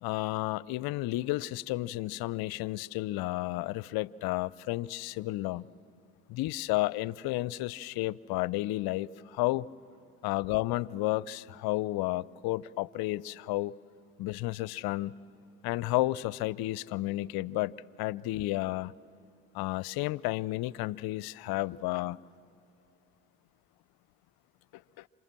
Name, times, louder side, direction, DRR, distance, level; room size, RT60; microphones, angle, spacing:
voice 1, 0.0-5.7 6.3-9.7 10.2-13.7 14.2-15.1 15.6-18.9 19.5-22.2, left 18 dB, 55° left, 22 dB, 0.6 m, -32 dB
28.0 x 26.0 x 7.5 m, 2.5 s
hypercardioid pair, 60°, 45 cm